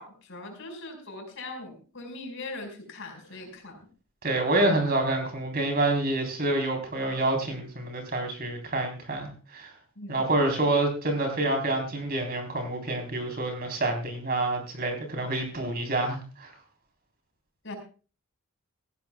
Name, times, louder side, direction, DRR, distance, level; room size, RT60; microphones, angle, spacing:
voice 1, 0.0-3.8 9.9-10.2 17.6-17.7, left 2 dB, 60° left, 3 dB, 5.1 m, -40 dB
voice 2, 4.2-9.7 10.1-16.5, right 2 dB, 45° right, 4 dB, 3.8 m, -27 dB
19.0 x 15.0 x 2.3 m, 0.36 s
head